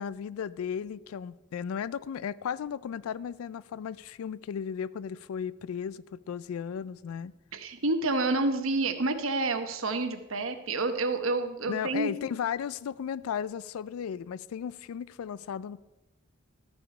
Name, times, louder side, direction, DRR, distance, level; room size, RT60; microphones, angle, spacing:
voice 1, 0.0-7.3 11.7-15.8, left 7 dB, 90° left, 0.3 m, -35 dB
voice 2, 7.5-12.1, right 2 dB, 75° right, 1.0 m, -29 dB
13.0 x 6.1 x 4.8 m
head